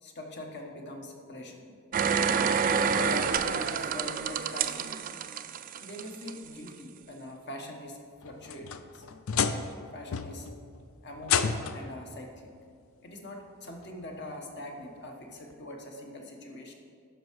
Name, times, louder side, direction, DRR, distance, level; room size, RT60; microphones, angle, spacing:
voice 1, 0.0-1.7 2.6-4.9 5.7-9.1 9.9-12.5 13.0-16.7, left 1 dB, 50° left, 2 dB, 1.2 m, -43 dB
sound 1, 1.9-6.3 6.7-6.8, right 6 dB, 40° right, 0.3 m, -28 dB
sound 2, 8.2-9.8 10.1-10.6 11.2-11.9 13.1-13.2 13.8-13.9 15.5-15.6, left 6 dB, 75° left, 0.5 m, -30 dB
11.0 x 5.6 x 4.7 m, 2.2 s
head